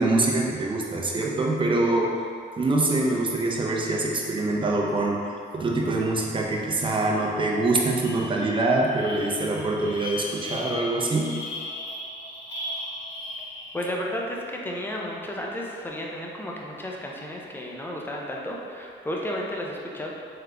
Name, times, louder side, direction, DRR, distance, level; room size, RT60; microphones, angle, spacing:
voice 1, 0.0-2.1 2.6-11.3, right 2 dB, 25° right, -2 dB, 0.7 m, -24 dB
sound 1, 7.2-7.4 7.7-14.1, left 1 dB, 65° left, 1.0 m, -37 dB
voice 2, 13.7-20.1, equal, 10° left, -2 dB, 0.6 m, -33 dB
3.7 x 3.3 x 3.3 m, 2.3 s
cardioid pair, 90°, 20 cm